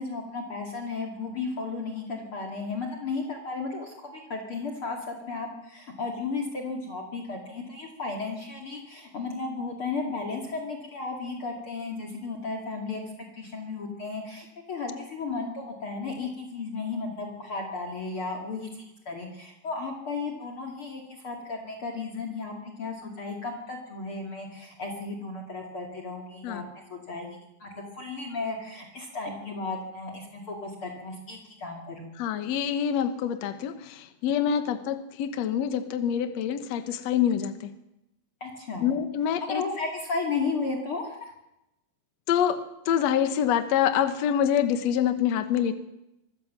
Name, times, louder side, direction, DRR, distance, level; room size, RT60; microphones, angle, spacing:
voice 1, 0.0-13.0 13.3-26.6 26.9-27.3 27.6-32.2 38.4-38.9 39.4-41.3, left 4 dB, 40° left, 2 dB, 3.0 m, -34 dB
voice 2, 32.2-37.7 38.8-39.6 42.3-42.6 42.9-45.7, left 9 dB, 60° left, 9 dB, 2.2 m, -26 dB
24.5 x 15.0 x 7.5 m, 0.89 s
omnidirectional pair, 4.0 m